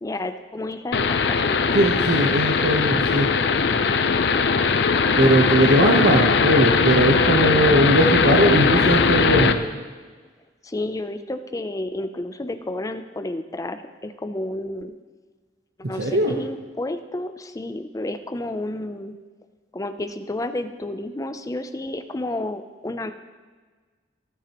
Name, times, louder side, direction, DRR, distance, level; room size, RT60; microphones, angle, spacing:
voice 1, 0.0-1.9 5.2-6.0 10.6-14.9 15.9-19.1 19.7-23.1, left 1 dB, 20° left, 9 dB, 0.5 m, -31 dB
sound 1, 0.9-9.5, left 5 dB, 70° left, 0.6 m, -20 dB
voice 2, 1.7-3.3 5.2-9.6 16.0-16.3, right 1 dB, 70° right, -1 dB, 1.0 m, -19 dB
18.0 x 8.9 x 3.0 m, 1.4 s
head